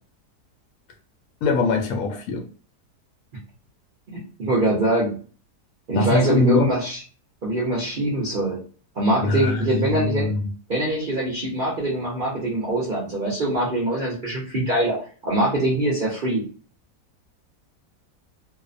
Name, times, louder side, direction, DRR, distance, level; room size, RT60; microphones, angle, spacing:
voice 1, 1.4-2.4 5.9-6.7 9.2-10.4, left 3 dB, 70° left, 0.9 m, -22 dB
voice 2, 4.1-5.2 5.9-7.0 7.4-8.6 9.0-10.3 10.7-15.0 15.2-16.4, right 1 dB, 50° right, 0.6 m, -23 dB
2.7 x 2.1 x 2.5 m
omnidirectional pair, 1.8 m